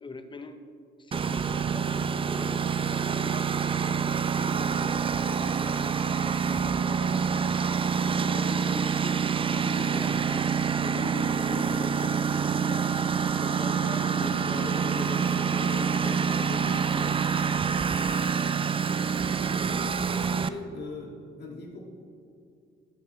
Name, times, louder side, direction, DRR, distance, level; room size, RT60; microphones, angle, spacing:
voice 1, 0.0-0.7 1.0-3.5 3.9-7.7 8.1-9.2 9.5-10.5 10.8-12.2 12.6-12.9 13.4-17.3, left 2 dB, 25° left, 8 dB, 0.8 m, -40 dB
Engine, 1.1-20.5, right 6 dB, 25° right, 0.4 m, -27 dB
voice 2, 19.4-21.1 21.4-21.9, left 3 dB, 55° left, -1 dB, 2.2 m, -40 dB
17.5 x 6.5 x 3.2 m, 2.4 s
cardioid pair, 90°, 20 cm